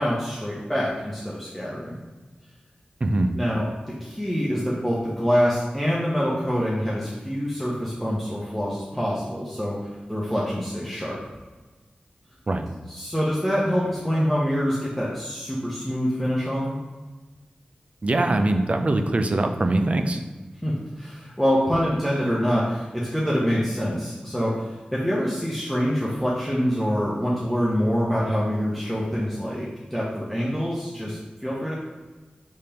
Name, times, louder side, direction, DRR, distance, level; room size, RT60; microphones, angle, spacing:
voice 1, 0.0-2.0 3.3-11.2 12.9-16.8 20.6-31.7, equal, ahead, -7 dB, 0.8 m, -25 dB
voice 2, 3.0-3.3 12.5-12.7 18.0-20.2, right 2 dB, 45° right, 6 dB, 0.4 m, -22 dB
5.0 x 3.6 x 2.9 m, 1.2 s
wide cardioid pair, 80°, 3 cm